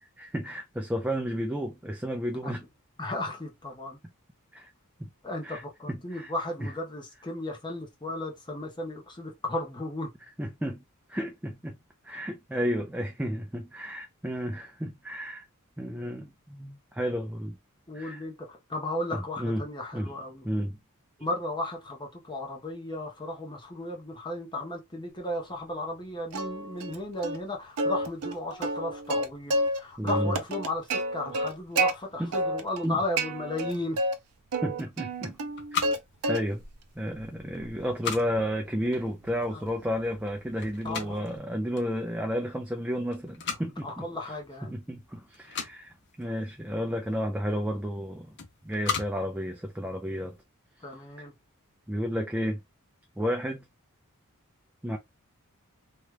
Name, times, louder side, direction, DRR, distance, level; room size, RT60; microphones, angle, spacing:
voice 1, 0.2-2.7 4.5-4.7 5.0-5.1 5.4-5.6 5.9-6.3 6.6-6.7 10.4-10.8 11.1-11.8 12.0-15.5 15.8-17.6 17.9-18.2 19.1-19.6 19.9-20.1 20.4-20.8 30.0-30.4 32.2-32.3 32.8-33.0 34.6-35.4 36.3-36.6 37.0-44.3 44.7-48.4 48.6-50.4 51.9-52.6 53.2-53.7 54.8-55.0, equal, 5° right, 0.3 m, -32 dB
voice 2, 3.0-4.0 5.2-10.1 17.9-20.4 21.2-34.0 39.5-39.6 40.8-41.3 43.8-44.8 50.8-51.3, left 1 dB, 20° left, 0.8 m, -35 dB
Plucked string instrument, 26.3-27.0 27.2-27.4 27.8-29.8 30.1-31.9 32.3-32.9 33.2-34.1 34.5-36.0 36.2-36.7 37.1-41.4, right 1 dB, 90° right, 0.6 m, -30 dB
sound 1, 35.1-50.4, left 7 dB, 50° left, 0.7 m, -40 dB
2.9 x 2.3 x 3.1 m
head